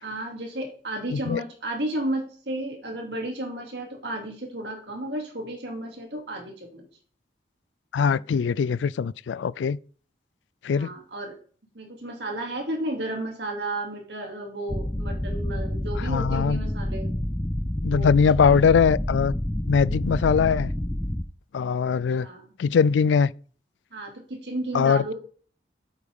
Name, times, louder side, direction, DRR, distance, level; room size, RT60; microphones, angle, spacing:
voice 1, 0.0-6.9 10.7-11.4 11.7-17.1 17.9-18.1 18.4-18.6 22.2-22.5 23.9-25.1, right 1 dB, 75° right, 2.6 m, -33 dB
voice 2, 1.1-1.4 7.9-9.8 10.6-10.9 16.0-16.6 17.8-19.3 19.7-20.7 21.5-22.3 22.6-23.3 24.7-25.1, left 6 dB, 85° left, 0.3 m, -21 dB
sound 1, 14.7-21.2, left 1 dB, 10° left, 0.4 m, -28 dB
8.6 x 8.3 x 3.6 m
head